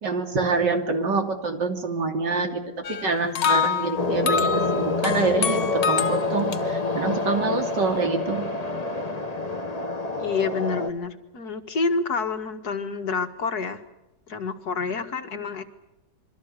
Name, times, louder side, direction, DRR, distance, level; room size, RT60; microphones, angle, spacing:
voice 1, 0.0-2.6 2.9-8.5, right 3 dB, 85° right, 5 dB, 3.6 m, -26 dB
sound 1, 2.8-6.6, left 6 dB, 85° left, 1.9 m, -26 dB
sound 2, 4.0-10.9, left 3 dB, 20° left, 1.8 m, -27 dB
voice 2, 10.2-13.8 14.3-15.6, left 4 dB, 65° left, 8 dB, 2.3 m, -28 dB
26.5 x 24.0 x 6.7 m, 0.98 s
omnidirectional pair, 1.9 m